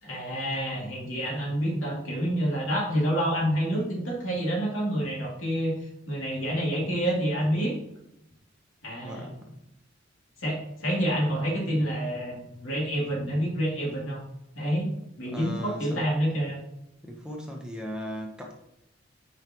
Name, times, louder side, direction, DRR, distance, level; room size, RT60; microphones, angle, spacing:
voice 1, 0.0-5.8 6.1-7.7 8.8-9.3 10.4-14.2 14.5-14.9 15.2-16.6, equal, 80° left, -3 dB, 2.7 m, -28 dB
voice 2, 9.0-9.6 15.3-16.1 17.0-18.5, equal, 5° right, -1 dB, 0.9 m, -38 dB
9.5 x 5.1 x 3.0 m, 0.83 s
head